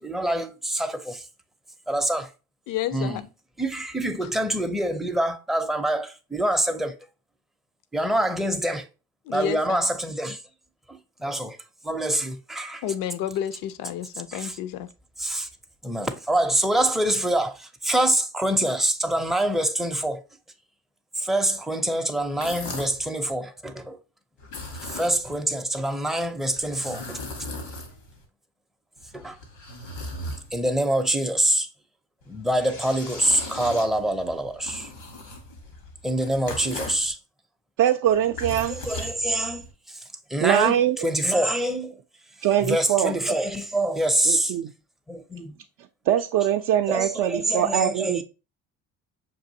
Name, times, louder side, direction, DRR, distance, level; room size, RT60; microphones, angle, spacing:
voice 1, 0.0-1.2 1.9-2.3 2.9-3.2 3.6-6.9 7.9-8.8 9.3-10.4 10.9-11.6 11.8-12.8 14.3-14.5 15.2-15.5 15.8-20.2 21.2-24.0 24.9-27.2 29.1-29.4 30.5-31.7 32.3-34.9 36.0-37.2 38.7-39.6 39.9-40.0 40.3-42.0 42.6-44.5 45.1-45.5 46.9-48.2, right 1 dB, ahead, 0.5 m, -25 dB
voice 2, 2.7-3.2 4.2-4.3 9.3-9.9 12.8-14.9, left 11 dB, 60° left, 0.5 m, -30 dB
sound 1, 22.2-23.1 24.4-25.4 26.5-28.2 29.0-30.8 32.2-37.1 38.1-39.7, left 1 dB, 85° left, 1.4 m, -38 dB
voice 3, 37.8-38.8 40.4-41.0 42.4-43.2 44.3-44.7 46.1-48.2, right 11 dB, 55° right, 0.5 m, -22 dB
6.1 x 2.5 x 2.7 m
supercardioid pair, 75°, 38 cm